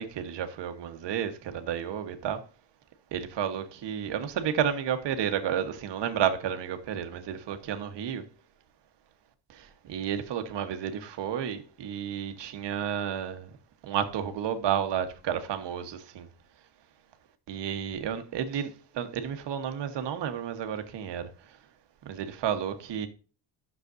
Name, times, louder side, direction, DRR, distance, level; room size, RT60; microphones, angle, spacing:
voice 1, 0.0-2.4 3.1-8.2 9.5-13.5 13.8-16.3 17.5-21.3 22.0-23.1, right 9 dB, 85° right, 1.4 m, -31 dB
12.0 x 6.9 x 2.6 m
wide cardioid pair, 180°, 41 cm